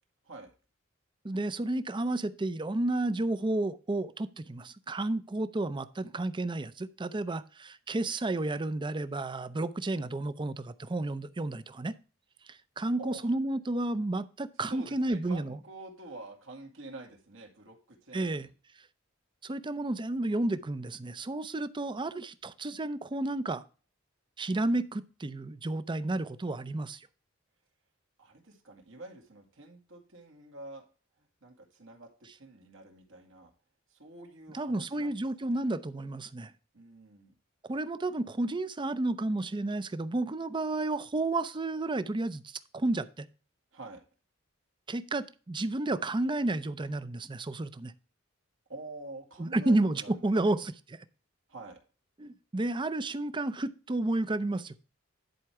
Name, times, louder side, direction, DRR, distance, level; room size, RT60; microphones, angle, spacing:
voice 1, 1.2-11.9 12.5-15.6 18.1-18.5 19.4-23.6 24.4-27.1 34.5-36.5 37.7-43.3 44.9-47.9 49.4-50.7 52.2-54.8, right 2 dB, 25° right, 0.5 m, -31 dB
voice 2, 13.0-13.3 14.7-18.5 28.2-30.9 31.4-33.5 33.9-35.6 36.7-37.3 43.7-44.0 48.7-50.6 51.5-51.8, right 2 dB, 80° right, 2.3 m, -47 dB
10.5 x 4.5 x 4.8 m
head